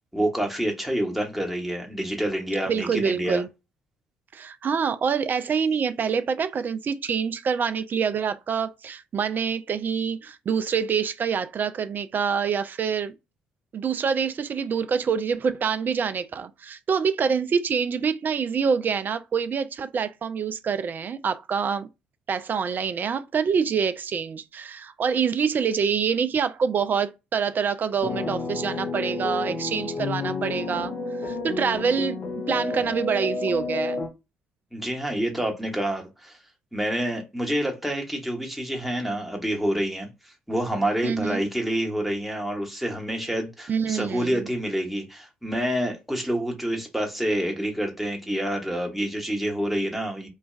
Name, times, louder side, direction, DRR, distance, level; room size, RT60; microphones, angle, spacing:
voice 1, 0.1-3.4 34.7-36.4 36.7-40.1 40.5-50.3, right 1 dB, 5° right, 0.9 m, -27 dB
voice 2, 2.7-3.5 4.3-13.1 13.7-21.9 22.3-30.9 31.2-32.2 32.5-34.0 41.0-41.4 43.7-44.5, right 6 dB, 35° right, 0.3 m, -26 dB
sound 1, 28.0-34.1, left 3 dB, 40° left, 0.6 m, -30 dB
3.0 x 2.2 x 2.3 m
figure-of-eight pair, 45°, 5 cm